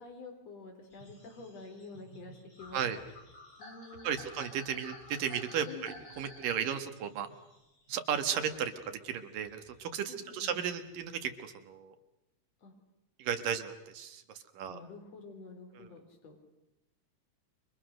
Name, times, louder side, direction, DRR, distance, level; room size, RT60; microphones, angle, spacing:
voice 1, 0.0-3.0 3.6-4.3 5.7-5.9 10.1-10.5 12.6-12.7 14.7-16.4, left 3 dB, 50° left, 3 dB, 5.0 m, -48 dB
sound 1, 0.9-8.9 9.3-11.6, left 2 dB, 25° left, 4.9 m, -53 dB
voice 2, 4.0-7.3 7.9-11.9 13.2-14.2 14.5-14.8 15.8-15.9, right 8 dB, 80° right, 8 dB, 3.3 m, -35 dB
29.5 x 24.5 x 6.6 m, 0.91 s
omnidirectional pair, 3.8 m